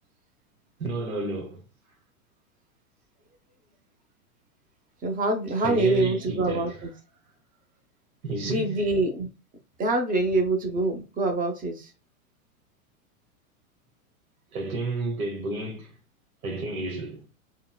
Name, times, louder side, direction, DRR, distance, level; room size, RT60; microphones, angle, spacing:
voice 1, 0.8-1.6 5.6-6.8 8.2-8.8 14.5-15.9 16.4-17.2, right 2 dB, 80° right, 1.2 m, -31 dB
voice 2, 5.0-6.9 8.4-9.3 9.8-11.9, right 2 dB, 20° right, 0.7 m, -25 dB
3.7 x 2.1 x 2.2 m
hypercardioid pair, 105°, 43 cm